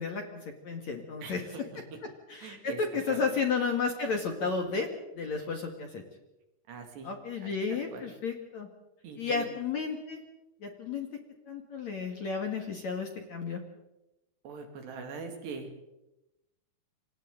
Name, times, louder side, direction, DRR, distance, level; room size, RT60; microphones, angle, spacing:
voice 1, 0.0-1.4 2.3-4.9 5.1-6.0 7.0-8.7 9.2-10.2 10.6-11.1 11.5-13.6, left 5 dB, 50° left, 3 dB, 2.4 m, -32 dB
voice 2, 2.4-2.8 3.1-3.3 6.7-7.1 7.4-8.1 9.0-9.5 14.4-15.7, right 5 dB, 65° right, 4 dB, 4.5 m, -42 dB
29.0 x 25.5 x 3.9 m, 0.96 s
omnidirectional pair, 5.3 m